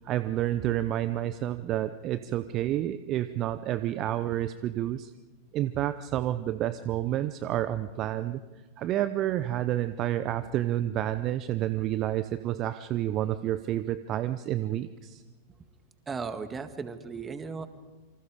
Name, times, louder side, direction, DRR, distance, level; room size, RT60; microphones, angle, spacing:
voice 1, 0.0-5.1 5.5-8.4 8.8-15.2, right 13 dB, 35° right, 13 dB, 0.8 m, -29 dB
voice 2, 16.1-17.7, right 5 dB, 15° right, 10 dB, 1.8 m, -36 dB
28.0 x 25.5 x 5.1 m, 1.2 s
figure-of-eight pair, 90°, 0 cm